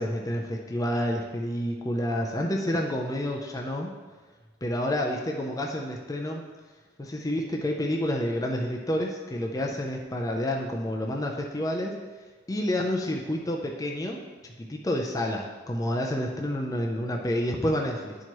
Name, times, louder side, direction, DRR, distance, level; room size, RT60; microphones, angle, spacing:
voice 1, 0.0-3.9 4.6-6.5 7.0-12.0 12.5-14.2 14.6-18.2, left 1 dB, 15° left, 0 dB, 0.5 m, -29 dB
10.5 x 4.5 x 3.0 m, 1.4 s
head